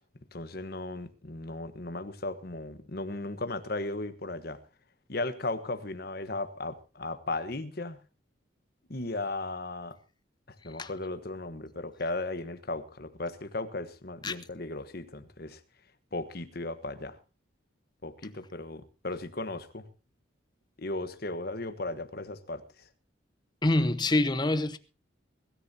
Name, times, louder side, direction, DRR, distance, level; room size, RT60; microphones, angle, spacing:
voice 1, 0.3-4.6 5.1-8.0 8.9-10.0 10.6-15.6 16.1-17.2 18.0-19.8 20.8-22.6, left 2 dB, 50° left, 1.2 m, -36 dB
voice 2, 23.6-24.8, left 2 dB, 20° left, 0.8 m, -25 dB
23.0 x 13.5 x 2.8 m
head